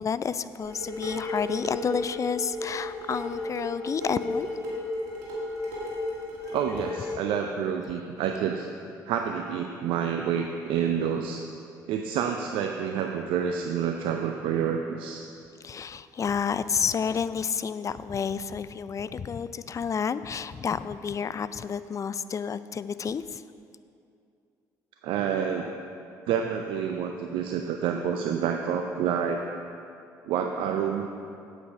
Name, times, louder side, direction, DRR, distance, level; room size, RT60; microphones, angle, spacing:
voice 1, 0.0-4.5 15.6-23.4, left 6 dB, 35° left, 14 dB, 0.4 m, -30 dB
Dishes pots and pans, 0.6-7.2, left 2 dB, 85° right, 2.2 m, -34 dB
voice 2, 6.5-8.7 9.1-11.4 11.9-15.2 25.0-25.7 26.3-29.4 30.3-31.1, right 8 dB, 65° right, 4 dB, 0.5 m, -28 dB
8.4 x 8.2 x 4.9 m, 2.5 s
hypercardioid pair, 55°, 10 cm